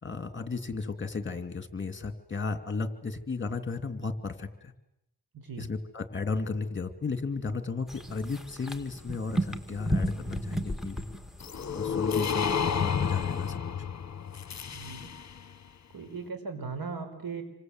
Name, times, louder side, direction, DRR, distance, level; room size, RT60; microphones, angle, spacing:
voice 1, 0.0-4.7 5.6-11.0 11.7-13.6, left 4 dB, 30° left, 9 dB, 2.6 m, -34 dB
voice 2, 5.3-5.7 14.7-15.1 15.9-17.4, right 5 dB, 70° right, 6 dB, 5.3 m, -38 dB
sound 1, 7.9-13.5, right 1 dB, ahead, 2.3 m, -35 dB
sound 2, 11.4-15.4, left 7 dB, 45° left, 1.2 m, -30 dB
28.0 x 25.0 x 7.9 m, 0.83 s
wide cardioid pair, 95°, 37 cm